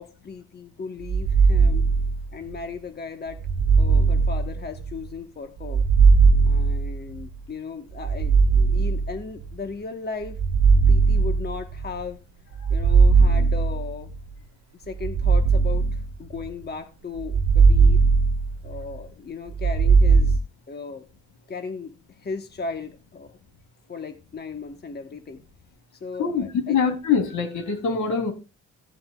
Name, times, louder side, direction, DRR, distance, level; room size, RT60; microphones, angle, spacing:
voice 1, 0.0-1.9 2.3-3.4 3.8-5.9 6.4-8.4 8.7-10.4 10.9-12.2 12.7-14.1 14.7-18.0 18.6-20.4 20.7-21.1 21.5-23.4 23.9-25.4 25.9-26.8, left 4 dB, 35° left, 7 dB, 1.3 m, -36 dB
sound 1, 1.0-2.6 3.4-5.1 5.6-7.4 8.0-9.5 10.2-12.0 12.6-14.2 14.9-16.6 17.2-19.0 19.5-20.4, right 4 dB, 65° right, 1.4 m, -19 dB
voice 2, 26.2-28.3, left 6 dB, 75° left, 4 dB, 3.2 m, -24 dB
16.5 x 7.6 x 2.3 m, 0.30 s
cardioid pair, 90°, 30 cm